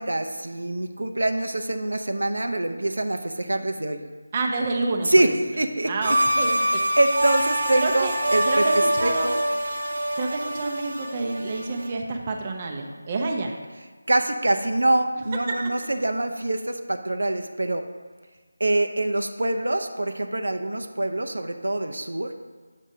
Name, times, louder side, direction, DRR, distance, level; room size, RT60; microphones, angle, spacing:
voice 1, 0.0-4.0 5.1-5.3 5.6-6.2 6.7-8.6 9.0-9.4 14.1-17.8 18.6-22.3, right 1 dB, 85° right, 7 dB, 0.6 m, -25 dB
voice 2, 4.3-5.3 5.9-6.8 7.7-8.1 8.5-9.3 10.2-13.6 15.5-15.6, right 3 dB, 30° right, 2 dB, 0.6 m, -28 dB
sound 1, 6.0-11.9, equal, 55° right, 1.1 m, -25 dB
7.5 x 6.2 x 2.7 m, 1.4 s
figure-of-eight pair, 165°, 0 cm